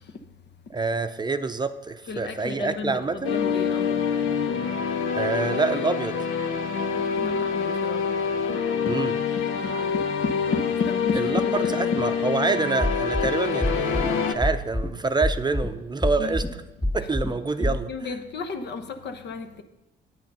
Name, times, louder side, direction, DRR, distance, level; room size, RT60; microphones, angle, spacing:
voice 1, 0.7-3.3 5.1-6.2 8.9-9.1 11.2-11.4 11.8-16.4 16.9-17.9, right 4 dB, 20° right, 0.6 m, -26 dB
voice 2, 2.1-4.0 6.7-8.1 9.6-10.0 10.5-12.0 16.2-16.4 17.6-19.6, left 4 dB, 60° left, 1.0 m, -33 dB
sound 1, 3.2-14.3, left 6 dB, 85° left, 0.9 m, -26 dB
sound 2, 12.8-13.3 13.6-14.1 14.4-14.9 15.2-15.7 16.0-16.5 16.8-17.3 17.6-17.7, left 1 dB, 10° left, 2.3 m, -25 dB
9.1 x 8.9 x 5.5 m
cardioid pair, 90°, 20 cm